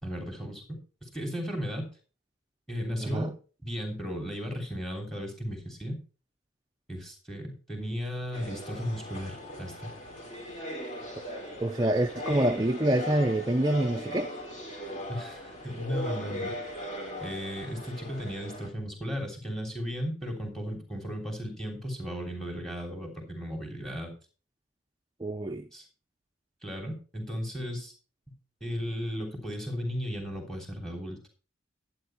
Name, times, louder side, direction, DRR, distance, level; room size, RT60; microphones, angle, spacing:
voice 1, 0.0-1.8 2.7-3.3 3.6-6.0 6.9-9.9 15.1-16.8 17.2-24.1 25.7-25.8 26.6-27.9 28.6-31.2, equal, ahead, 3.1 m, -35 dB
voice 2, 3.0-3.3 11.1-11.2 11.6-14.3 25.2-25.7, right 1 dB, 20° right, 0.6 m, -26 dB
sound 1, 8.3-18.7, equal, 35° left, 3.4 m, -39 dB
12.0 x 8.7 x 4.5 m
head